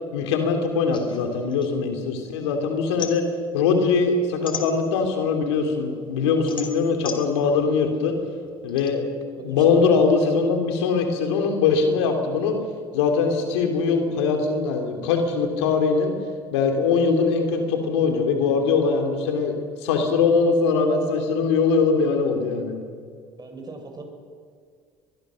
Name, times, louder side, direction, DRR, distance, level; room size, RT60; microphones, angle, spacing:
voice 1, 0.1-3.2 3.5-8.1 8.6-9.0 9.4-12.6 12.9-16.1 16.5-19.5 19.8-22.8, left 5 dB, 85° left, 4 dB, 3.3 m, -21 dB
sound 1, 0.9-2.4 2.7-5.3 5.7-8.9, left 6 dB, 35° left, 3.4 m, -36 dB
voice 2, 9.4-9.7 23.4-24.0, right 3 dB, 30° right, 3 dB, 6.6 m, -40 dB
22.5 x 22.5 x 6.5 m, 2.1 s
hypercardioid pair, 75°, 14 cm